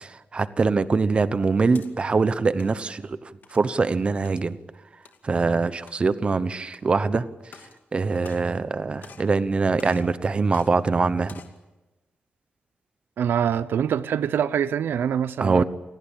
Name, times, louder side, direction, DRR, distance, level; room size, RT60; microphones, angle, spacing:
voice 1, 0.0-3.2 3.5-4.6 5.2-7.2 7.9-11.4 15.4-15.6, right 4 dB, 30° right, 14 dB, 1.0 m, -23 dB
sound 1, 1.7-1.9 2.4-2.8 3.4-3.7 4.3-4.5 5.1-5.2 5.8-6.2 6.7-6.8 7.4-7.8 8.1-8.7 9.0-9.4 9.8-10.1 10.5-10.7 11.2-11.6, left 6 dB, 65° left, 2.5 m, -48 dB
voice 2, 13.2-15.6, right 8 dB, 85° right, 16 dB, 0.8 m, -24 dB
28.0 x 18.5 x 8.7 m, 1.1 s
wide cardioid pair, 145°, 4 cm